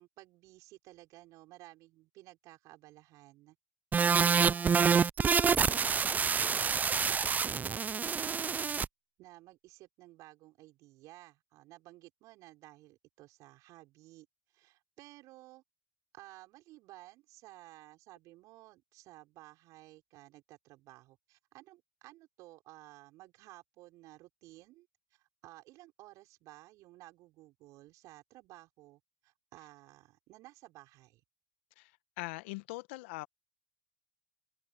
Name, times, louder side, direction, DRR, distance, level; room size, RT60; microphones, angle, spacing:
voice 1, 0.0-3.6 4.2-5.0 5.6-8.8 9.2-14.3 14.5-15.6 16.1-31.2, right 18 dB, 60° right, 6.1 m, -55 dB
sound 1, 3.9-8.9, right 6 dB, 25° right, 0.5 m, -27 dB
voice 2, 31.8-33.3, left 24 dB, 70° left, 1.8 m, -42 dB
open air
hypercardioid pair, 80°, 7 cm